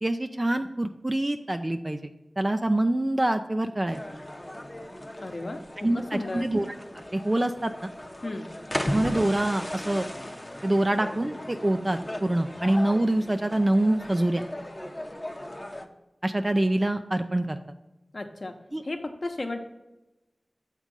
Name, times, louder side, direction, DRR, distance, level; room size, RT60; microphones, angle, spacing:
voice 1, 0.0-2.1 2.4-4.0 5.8-6.7 7.1-7.7 8.9-10.1 10.6-14.4 16.2-17.6 18.7-18.8, right 1 dB, 30° right, 7 dB, 0.4 m, -25 dB
sound 1, 3.9-15.9, left 1 dB, 20° left, 0.7 m, -37 dB
voice 2, 5.2-5.6 5.9-6.5 8.2-8.5 18.1-18.5 18.8-19.6, left 2 dB, 55° left, 5 dB, 0.8 m, -34 dB
7.1 x 3.7 x 5.4 m, 1.0 s
wide cardioid pair, 50°, 0 cm